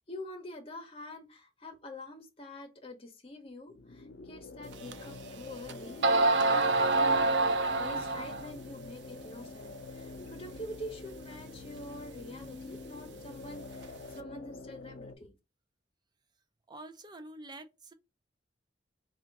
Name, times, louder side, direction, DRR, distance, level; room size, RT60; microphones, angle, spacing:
voice 1, 0.0-7.4 7.8-15.3, left 1 dB, 35° left, 0.9 m, -46 dB
sound 1, 3.7-15.2, left 3 dB, 70° left, 0.5 m, -46 dB
sound 2, 4.9-5.0 5.7-5.8 6.0-8.5, right 2 dB, 80° right, 0.4 m, -26 dB
voice 2, 16.7-17.9, right 2 dB, 25° right, 0.5 m, -47 dB
3.6 x 2.5 x 4.6 m
head